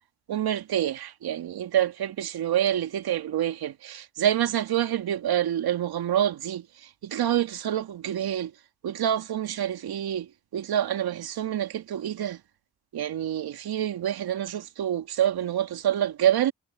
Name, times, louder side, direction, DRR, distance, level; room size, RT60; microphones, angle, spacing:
voice 1, 0.3-8.5 8.8-12.4 12.9-16.5, right 10 dB, 70° right, 2.5 m, -27 dB
hypercardioid pair, 45°, 39 cm